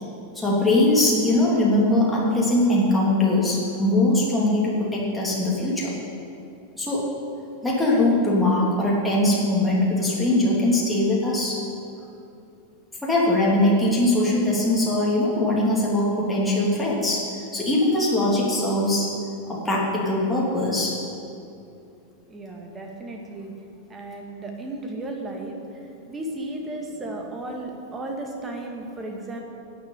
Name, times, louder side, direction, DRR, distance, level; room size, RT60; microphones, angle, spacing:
voice 1, 0.3-5.9 6.8-7.1 7.6-11.6 13.0-19.1 19.5-21.0, left 1 dB, 5° left, -6 dB, 3.0 m, -21 dB
voice 2, 22.3-23.5 23.9-25.6 26.1-29.4, right 2 dB, 20° right, 1 dB, 2.0 m, -34 dB
11.0 x 7.6 x 8.6 m, 2.7 s
figure-of-eight pair, 90°, 0 cm